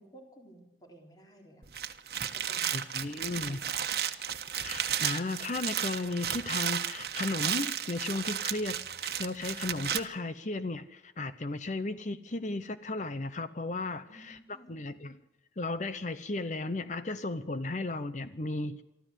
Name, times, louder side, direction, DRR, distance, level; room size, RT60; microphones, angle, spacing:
voice 1, 0.0-1.8 2.3-4.0 14.1-14.8, right 1 dB, 25° left, 1 dB, 3.8 m, -55 dB
sound 1, 1.6-10.0, right 9 dB, 60° right, 1.3 m, -33 dB
voice 2, 2.7-3.6 4.6-14.4 14.7-15.2 15.6-18.8, left 2 dB, 45° left, 12 dB, 0.8 m, -35 dB
24.0 x 14.0 x 8.1 m, 0.98 s
head